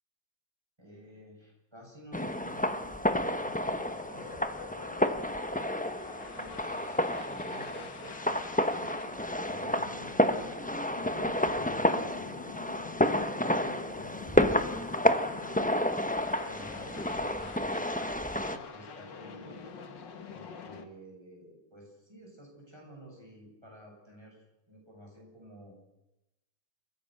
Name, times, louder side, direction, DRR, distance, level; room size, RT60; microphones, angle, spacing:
voice 1, 0.8-5.4 6.3-8.4 9.4-10.7 11.4-12.5 13.1-15.0 16.4-19.6 20.3-24.4 24.7-25.8, equal, 10° right, -1 dB, 7.9 m, -51 dB
sound 1, 2.1-18.6, left 1 dB, 10° left, 0.3 m, -30 dB
sound 2, 2.5-20.8, left 6 dB, 60° left, 2.2 m, -46 dB
29.5 x 15.5 x 6.6 m, 0.93 s
omnidirectional pair, 2.3 m